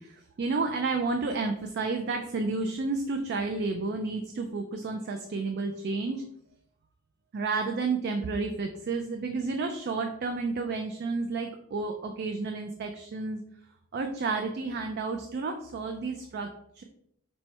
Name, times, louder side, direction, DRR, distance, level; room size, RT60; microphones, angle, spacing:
voice 1, 0.0-6.2 7.3-13.4 13.9-16.8, right 3 dB, 55° right, 5 dB, 0.4 m, -31 dB
4.3 x 2.1 x 4.4 m, 0.71 s
head